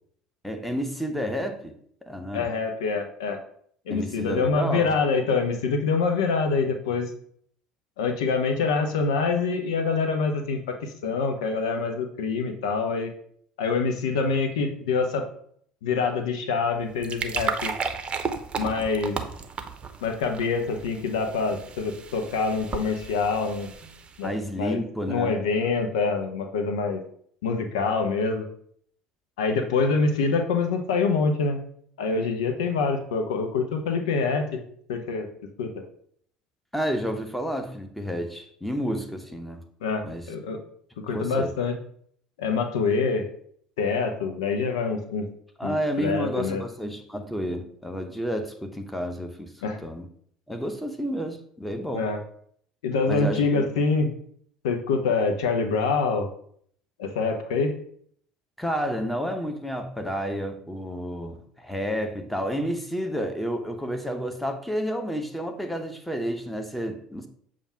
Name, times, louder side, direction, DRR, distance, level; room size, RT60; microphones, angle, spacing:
voice 1, 0.4-2.5 3.9-4.9 24.2-25.4 36.7-39.6 40.0-40.3 41.1-41.5 45.6-49.5 49.8-50.1 50.5-52.1 53.1-53.7 58.6-67.3, equal, 5° left, 5 dB, 0.9 m, -30 dB
voice 2, 2.3-3.4 3.9-7.1 8.0-13.1 13.6-15.2 15.8-17.7 18.6-19.2 20.0-23.7 24.2-24.8 25.1-27.0 27.4-28.5 29.4-31.6 32.0-34.6 34.9-35.3 35.6-35.7 39.8-40.6 41.0-41.7 42.4-43.3 43.8-45.3 45.6-46.6 49.6-49.8 51.9-52.2 52.8-54.1 54.6-56.3 57.0-57.7, left 4 dB, 70° left, 5 dB, 0.7 m, -25 dB
sound 1, 16.8-24.3, right 5 dB, 30° right, 0.7 m, -34 dB
7.0 x 2.5 x 5.6 m, 0.63 s
figure-of-eight pair, 65°, 3 cm